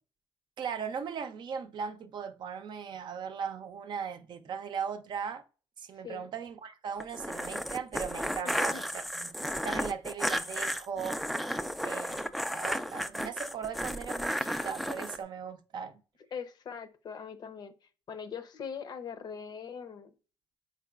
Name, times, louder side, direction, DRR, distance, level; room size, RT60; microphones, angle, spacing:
voice 1, 0.6-5.4 5.8-11.2 11.8-16.0, right 6 dB, 55° right, 0.6 m, -38 dB
sound 1, 7.0-15.2, equal, ahead, 0.3 m, -33 dB
voice 2, 8.4-8.8 16.3-17.7 18.1-20.1, left 6 dB, 50° left, 0.6 m, -41 dB
3.9 x 3.7 x 2.3 m
supercardioid pair, 80°, 9 cm